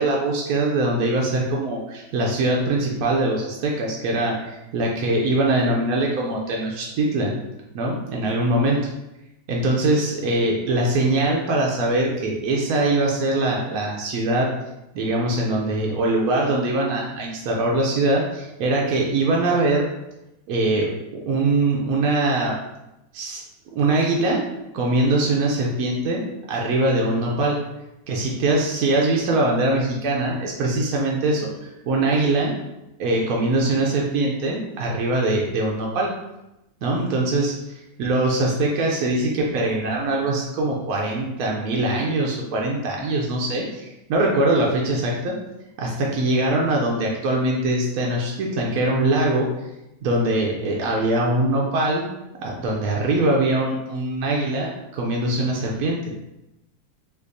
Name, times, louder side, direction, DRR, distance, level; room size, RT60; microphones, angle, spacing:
voice 1, 0.0-7.3 7.7-8.8 9.5-14.5 14.9-19.9 20.5-22.6 23.1-23.4 23.7-24.4 24.7-26.2 26.5-27.6 28.1-32.6 33.0-36.1 36.8-45.4 45.8-49.5 50.0-52.0 52.4-56.1, right 2 dB, 75° right, -2 dB, 0.8 m, -22 dB
4.2 x 2.6 x 2.6 m, 0.92 s
omnidirectional pair, 2.1 m